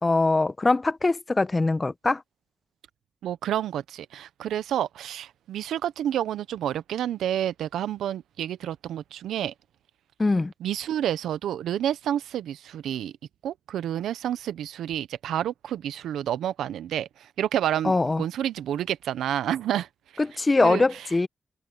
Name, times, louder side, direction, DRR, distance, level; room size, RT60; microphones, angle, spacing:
voice 1, 0.0-2.2 10.2-10.5 17.8-18.2 20.2-21.3, left 3 dB, 35° left, 1.3 m, -22 dB
voice 2, 3.2-9.5 10.6-13.1 13.4-19.9 20.1-20.2 20.6-21.3, right 11 dB, 90° right, 0.8 m, -29 dB
supercardioid pair, 40°, 0 cm